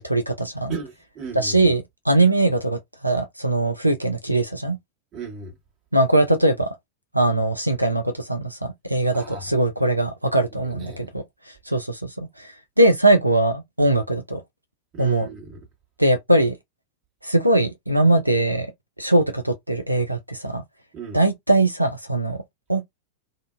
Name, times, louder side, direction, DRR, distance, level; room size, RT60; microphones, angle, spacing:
voice 1, 0.0-0.8 1.3-4.8 5.9-6.8 7.1-14.4 15.0-15.3 16.0-16.6 17.2-18.7 19.0-20.6 21.1-22.4 22.7-22.8, right 2 dB, 90° right, 0.3 m, -21 dB
voice 2, 0.7-1.7 5.1-5.6 9.1-9.5 10.6-11.1 14.9-15.6 20.9-21.2, right 4 dB, 30° right, 1.3 m, -36 dB
2.5 x 2.1 x 2.3 m
figure-of-eight pair, 90°, 0 cm